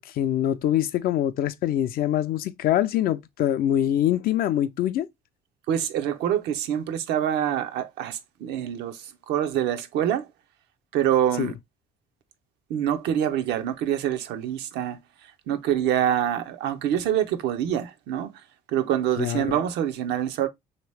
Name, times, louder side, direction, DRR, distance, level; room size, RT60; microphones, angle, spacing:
voice 1, 0.1-5.1 11.4-11.5 19.2-19.6, left 11 dB, 60° left, 0.4 m, -24 dB
voice 2, 5.7-10.3 10.9-11.5 12.7-15.0 15.5-18.3 18.7-20.5, right 10 dB, 85° right, 0.6 m, -25 dB
3.1 x 2.8 x 3.3 m
cardioid pair, 110°, 17 cm